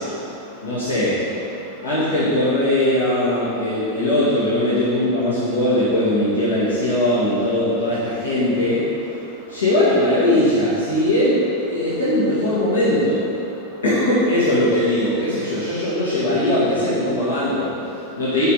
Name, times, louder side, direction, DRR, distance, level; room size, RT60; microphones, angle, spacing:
voice 1, 0.0-18.5, left 1 dB, 75° left, -10 dB, 1.9 m, -20 dB
7.8 x 5.1 x 5.6 m, 2.7 s
figure-of-eight pair, 90°, 0 cm